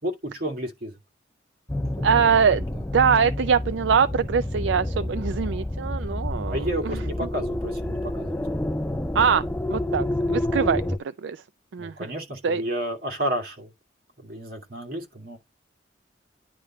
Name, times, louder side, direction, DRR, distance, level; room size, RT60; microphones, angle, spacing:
voice 1, 0.0-1.0 2.0-2.3 2.6-2.7 6.5-8.7 10.5-10.7 11.8-13.7 14.2-15.4, right 1 dB, 55° right, 2.6 m, -32 dB
sound 1, 1.7-11.0, left 1 dB, 10° left, 0.5 m, -29 dB
voice 2, 2.0-2.7 2.9-7.0 9.1-10.8 11.2-11.4 11.7-12.1 12.4-12.6, right 6 dB, 80° right, 0.4 m, -23 dB
10.0 x 3.6 x 4.4 m
head